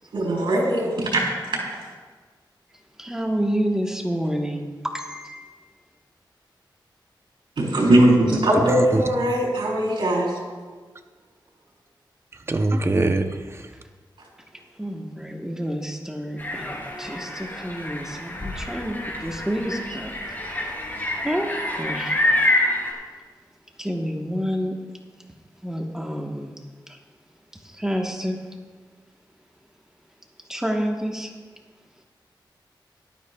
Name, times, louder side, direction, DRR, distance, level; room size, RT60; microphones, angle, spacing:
voice 1, 0.1-1.6 7.6-10.3, right 1 dB, 85° right, -3 dB, 4.3 m, -20 dB
voice 2, 3.0-4.7 4.9-5.7 14.8-20.1 20.5-20.6 21.2-22.3 23.8-24.8 25.6-26.5 26.9-27.0 27.6-28.4 30.5-31.3, equal, 5° right, 1 dB, 1.3 m, -29 dB
voice 3, 8.6-9.0 12.5-13.7, right 2 dB, 30° right, 7 dB, 0.8 m, -23 dB
sound 1, 16.4-22.9, left 1 dB, 25° left, 3.3 m, -27 dB
18.0 x 12.5 x 2.4 m, 1.4 s
wide cardioid pair, 80°, 8 cm